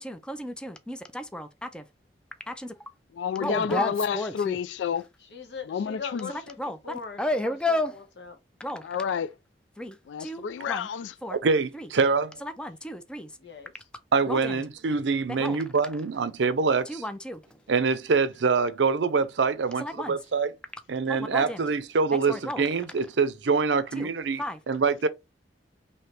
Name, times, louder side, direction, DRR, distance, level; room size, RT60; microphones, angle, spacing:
voice 1, 0.0-1.8 2.5-2.7 3.4-4.6 6.3-6.8 7.2-8.0 8.6-8.8 9.8-10.9 11.2-11.4 11.8-11.9 12.4-13.3 14.3-14.5 15.4-15.6 16.9-17.4 19.8-20.2 21.1-21.6 22.1-22.6 23.9-24.1 24.4-24.6, left 1 dB, 5° left, 0.4 m, -32 dB
voice 2, 3.1-5.1 5.7-6.3 8.8-9.3 10.1-11.1, left 7 dB, 85° left, 0.3 m, -29 dB
voice 3, 5.2-8.4 13.4-13.8, left 5 dB, 70° left, 1.1 m, -41 dB
voice 4, 11.4-12.4 14.1-17.0 17.7-20.5 20.9-25.1, right 4 dB, 85° right, 0.5 m, -25 dB
3.2 x 2.8 x 4.3 m
head